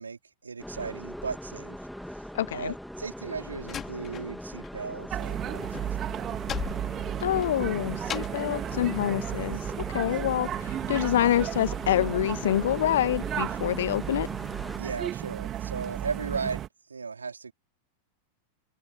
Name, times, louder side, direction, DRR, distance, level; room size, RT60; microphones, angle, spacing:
voice 1, 0.0-1.8 2.1-2.2 2.5-6.0 10.1-10.2 14.8-16.6 16.9-17.5, right 5 dB, 75° right, 4.7 m, -36 dB
sound 1, 0.6-14.8, equal, ahead, 2.8 m, -40 dB
voice 2, 2.3-2.8 7.2-9.6 9.9-14.3, left 12 dB, 60° left, 1.9 m, -26 dB
Slam, 2.9-4.8 5.0-8.5, left 9 dB, 25° left, 5.6 m, -39 dB
sound 2, 5.1-16.7, right 11 dB, 30° right, 2.5 m, -34 dB
open air
figure-of-eight pair, 90°, 0 cm